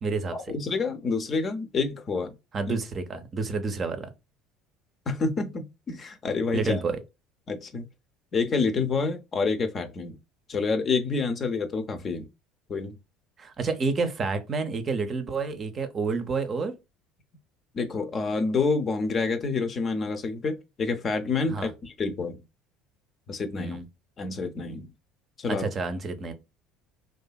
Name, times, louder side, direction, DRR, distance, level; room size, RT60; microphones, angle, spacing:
voice 1, 0.0-0.4 2.5-4.1 6.5-7.0 13.4-16.8 21.5-21.7 23.6-23.8 25.5-26.3, right 4 dB, 40° right, 0.5 m, -29 dB
voice 2, 0.5-2.4 2.7-2.8 5.1-6.8 7.5-7.9 8.3-10.2 10.5-12.3 12.7-13.0 17.7-22.4 23.3-23.8 24.2-24.9 25.4-25.7, left 4 dB, 40° left, 0.5 m, -28 dB
2.7 x 2.4 x 2.2 m
hypercardioid pair, 70°, 0 cm